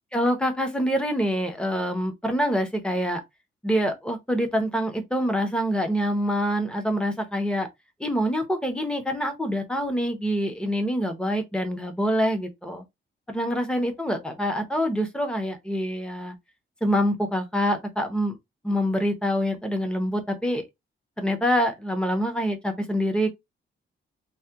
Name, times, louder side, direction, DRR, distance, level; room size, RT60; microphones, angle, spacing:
voice 1, 0.1-3.2 3.6-7.7 8.0-12.8 13.3-16.4 16.8-18.4 18.6-20.6 21.2-23.3, equal, 5° left, 0.6 m, -25 dB
2.7 x 2.1 x 3.3 m
wide cardioid pair, 170°, 21 cm